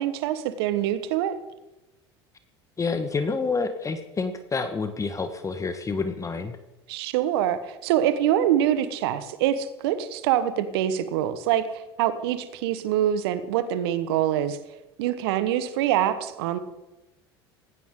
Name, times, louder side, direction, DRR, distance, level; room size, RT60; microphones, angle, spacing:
voice 1, 0.0-1.4 6.9-11.7 12.0-14.6 15.0-16.6, right 11 dB, 70° right, 12 dB, 1.3 m, -24 dB
voice 2, 2.8-6.6, left 4 dB, 25° left, 9 dB, 1.5 m, -28 dB
18.0 x 16.5 x 3.8 m, 1.0 s
hypercardioid pair, 70°, 13 cm